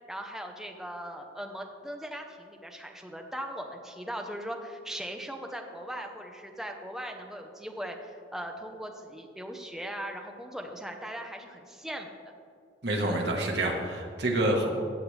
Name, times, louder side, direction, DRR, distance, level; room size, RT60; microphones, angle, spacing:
voice 1, 0.1-12.1, equal, ahead, 3 dB, 0.8 m, -39 dB
voice 2, 12.8-14.8, right 1 dB, 65° right, 0 dB, 1.5 m, -27 dB
14.5 x 7.8 x 3.3 m, 2.2 s
head